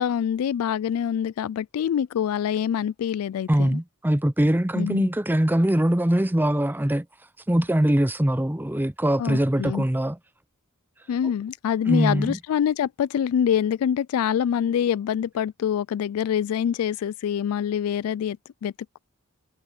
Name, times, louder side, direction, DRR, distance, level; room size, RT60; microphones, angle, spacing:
voice 1, 0.0-3.8 4.7-5.1 9.2-9.8 11.1-19.0, left 9 dB, 75° left, 0.3 m, -25 dB
voice 2, 3.5-7.0 7.5-10.2 11.9-12.4, right 1 dB, 10° right, 0.6 m, -22 dB
head